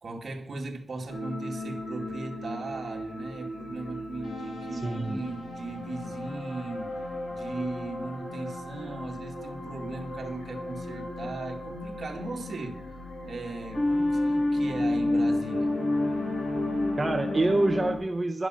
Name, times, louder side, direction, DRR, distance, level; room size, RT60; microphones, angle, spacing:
voice 1, 0.0-6.9 7.3-12.8 13.3-15.7, right 3 dB, 50° right, 2 dB, 2.1 m, -37 dB
sound 1, 1.1-18.0, left 2 dB, 80° left, 4.8 m, -32 dB
voice 2, 4.7-5.2 17.0-18.5, right 2 dB, 20° right, 5 dB, 0.6 m, -26 dB
11.5 x 11.0 x 6.3 m, 0.64 s
wide cardioid pair, 165°, 0 cm